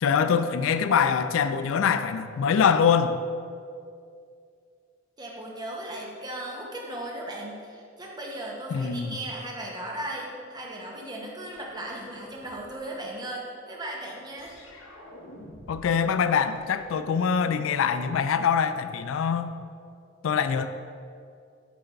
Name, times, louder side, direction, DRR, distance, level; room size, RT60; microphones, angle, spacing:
voice 1, 0.0-3.2 8.7-9.2 15.7-19.5 20.2-20.7, left 6 dB, 90° left, 11 dB, 0.3 m, -24 dB
voice 2, 5.2-14.6, right 1 dB, 20° right, -2 dB, 0.9 m, -37 dB
sound 1, 11.5-12.8 14.4-16.0 16.3-17.9, left 1 dB, 70° left, 0.9 m, -49 dB
7.7 x 3.4 x 4.0 m, 2.4 s
head